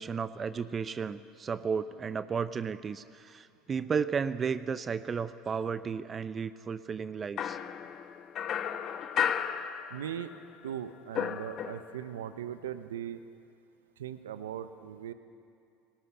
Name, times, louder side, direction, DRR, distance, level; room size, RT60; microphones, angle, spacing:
voice 1, 0.0-7.6, right 6 dB, 30° right, 14 dB, 0.7 m, -33 dB
sound 1, 7.4-10.4 10.7-12.1, left 8 dB, 50° left, 1.1 m, -34 dB
voice 2, 9.9-13.2 14.0-15.1, right 10 dB, 85° right, 11 dB, 0.8 m, -39 dB
18.5 x 18.0 x 9.9 m, 2.4 s
hypercardioid pair, 75°, 0 cm